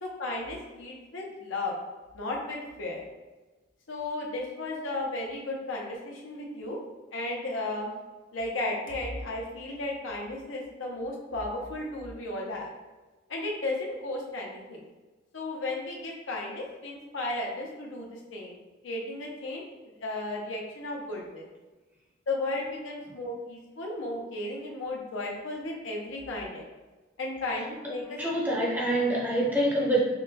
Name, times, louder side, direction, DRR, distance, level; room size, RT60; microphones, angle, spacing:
voice 1, 0.0-1.8 2.1-3.0 3.9-6.8 7.1-7.9 8.3-12.7 13.3-14.8 15.3-18.6 18.8-19.6 20.0-21.4 22.3-26.6 27.2-28.2, left 2 dB, 85° left, -1 dB, 0.8 m, -34 dB
voice 2, 28.2-30.0, right 1 dB, 10° right, -4 dB, 0.6 m, -25 dB
5.6 x 2.2 x 2.8 m, 1.2 s
head